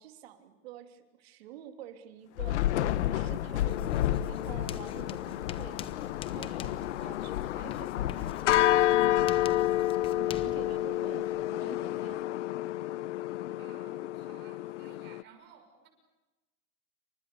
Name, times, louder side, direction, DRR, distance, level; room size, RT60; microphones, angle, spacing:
voice 1, 0.0-2.8 3.1-5.9 6.3-9.7 10.1-12.2, right 11 dB, 55° right, 7 dB, 3.0 m, -49 dB
Thunder / Rain, 2.4-9.9, left 12 dB, 70° left, 1.3 m, -33 dB
sound 1, 3.6-15.2, left 14 dB, 85° left, 0.9 m, -30 dB
Writing, 3.6-12.2, left 9 dB, 15° left, 0.9 m, -46 dB
voice 2, 13.6-15.9, right 7 dB, 30° right, 5 dB, 6.3 m, -56 dB
29.0 x 25.5 x 6.9 m, 1.1 s
supercardioid pair, 170°, 35 cm